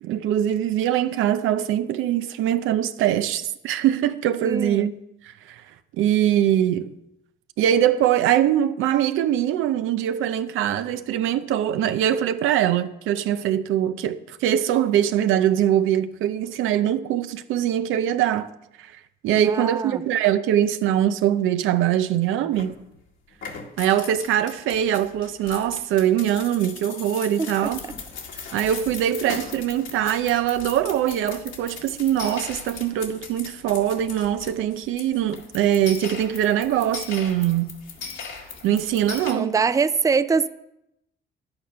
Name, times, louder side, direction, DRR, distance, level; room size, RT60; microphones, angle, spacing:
voice 1, 0.0-4.9 5.2-5.6 6.0-6.9 7.6-18.5 18.8-18.9 19.2-22.8 23.8-27.8 28.5-37.8 38.6-39.5, right 11 dB, 90° right, 0.6 m, -22 dB
voice 2, 4.4-4.9 19.4-20.0 27.4-27.7 28.3-28.5 39.3-40.5, right 5 dB, 15° right, 0.4 m, -23 dB
sound 1, 22.5-23.0 23.3-39.3, left 5 dB, 75° left, 1.9 m, -39 dB
10.5 x 8.8 x 5.6 m
cardioid pair, 90°, 20 cm